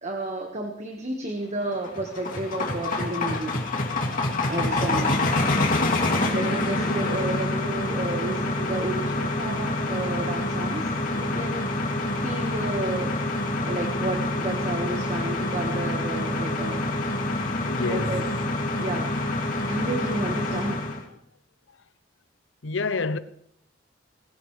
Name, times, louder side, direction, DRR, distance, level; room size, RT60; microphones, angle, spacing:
voice 1, 0.0-3.6 4.5-5.4 6.3-13.1 13.6-16.8 17.9-18.2 18.8-19.1 19.4-20.8, right 2 dB, 35° right, 1.6 m, -32 dB
sound 1, 1.6-21.0, left 2 dB, 45° left, 2.6 m, -26 dB
voice 2, 17.6-18.2 22.6-23.2, left 3 dB, 65° left, 0.8 m, -28 dB
19.5 x 17.0 x 3.3 m
head